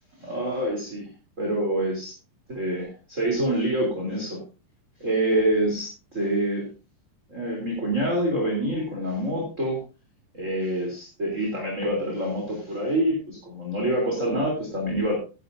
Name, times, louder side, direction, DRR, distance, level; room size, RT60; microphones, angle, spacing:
voice 1, 0.2-1.1 1.4-2.1 2.5-4.4 5.0-6.7 7.3-9.8 10.3-15.1, right 1 dB, 20° right, -1 dB, 3.5 m, -26 dB
17.0 x 11.0 x 2.8 m, 0.33 s
omnidirectional pair, 4.6 m